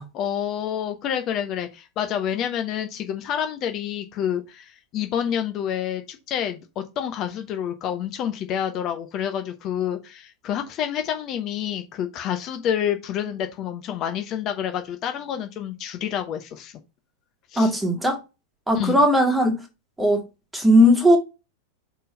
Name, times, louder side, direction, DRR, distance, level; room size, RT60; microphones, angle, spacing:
voice 1, 0.1-16.7 17.5-17.7 18.7-19.0, left 9 dB, 35° left, 0.9 m, -28 dB
voice 2, 17.6-18.2 18.7-19.6 20.0-20.3 20.5-21.2, equal, 10° right, 2.0 m, -17 dB
5.1 x 4.4 x 5.3 m
figure-of-eight pair, 90°, 0 cm